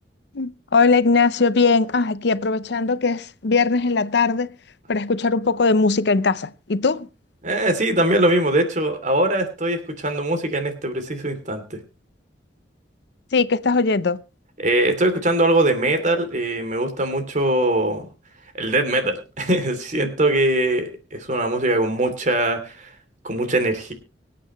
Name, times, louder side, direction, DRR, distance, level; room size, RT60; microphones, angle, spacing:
voice 1, 0.3-4.5 4.9-7.1 13.3-14.2, left 4 dB, 65° left, 0.7 m, -20 dB
voice 2, 7.4-11.8 14.6-18.1 18.6-22.9 23.2-23.9, right 1 dB, 45° right, 2.9 m, -21 dB
24.5 x 8.6 x 3.1 m
head